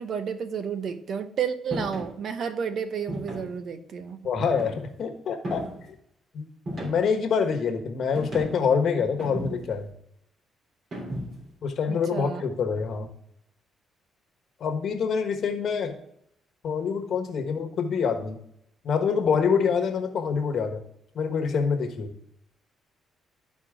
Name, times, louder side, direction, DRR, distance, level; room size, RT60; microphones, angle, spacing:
voice 1, 0.0-4.2 11.9-12.4, right 7 dB, 60° right, 0.9 m, -31 dB
sound 1, 1.7-2.1 3.1-3.6 4.4-5.0 5.4-5.9 6.7-7.2 8.1-8.7 9.2-9.8 10.9-11.5, equal, 45° right, 3.5 m, -35 dB
voice 2, 4.2-5.6 6.3-6.4 6.8-9.9 11.6-13.1 14.6-15.9 16.6-18.4 18.8-20.8 21.1-22.1, left 6 dB, 60° left, 1.2 m, -26 dB
12.5 x 4.3 x 3.6 m
cardioid pair, 90°, 0 cm